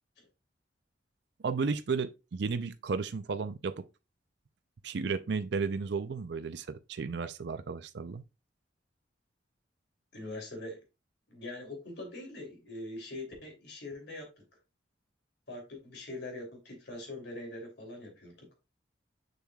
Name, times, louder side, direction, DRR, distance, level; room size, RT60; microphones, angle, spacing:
voice 1, 1.4-3.8 4.8-8.2, right 4 dB, 65° right, 0.5 m, -33 dB
voice 2, 10.1-10.8 11.3-14.3 15.5-18.5, left 2 dB, 65° left, 3.1 m, -43 dB
6.7 x 6.3 x 2.3 m
head